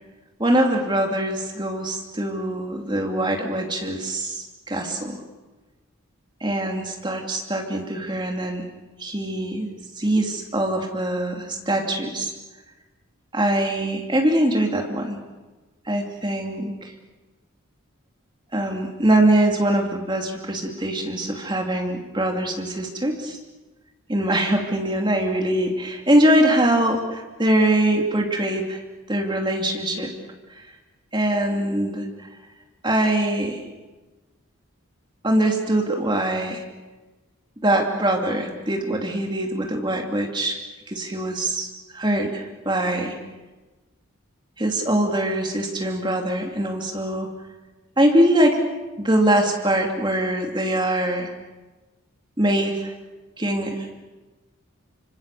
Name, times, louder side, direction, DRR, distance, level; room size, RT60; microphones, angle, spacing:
voice 1, 0.4-5.2 6.4-8.6 9.0-12.3 13.3-15.2 15.9-16.9 18.5-23.4 24.1-28.8 29.1-30.1 31.1-32.0 32.8-33.6 35.2-36.6 37.6-40.6 40.9-43.1 44.6-47.3 48.0-48.6 49.0-51.3 52.4-52.9 53.4-53.9, right 1 dB, 20° right, 2 dB, 2.7 m, -23 dB
26.0 x 25.5 x 6.9 m, 1.2 s
head